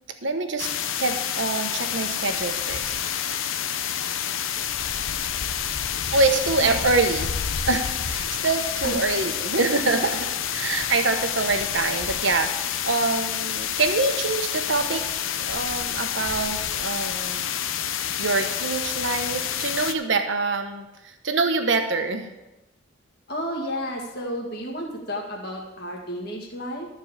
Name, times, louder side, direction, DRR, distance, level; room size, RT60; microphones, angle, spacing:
voice 1, 0.2-0.7 1.0-3.0 6.1-7.3 7.7-15.0 15.4-17.6 18.2-22.3, right 3 dB, 70° right, 7 dB, 1.1 m, -25 dB
sound 1, 0.6-19.9, left 9 dB, 85° left, 0.7 m, -28 dB
voice 2, 23.3-26.9, equal, 50° left, -1 dB, 1.9 m, -32 dB
13.5 x 4.8 x 7.2 m, 1.0 s
head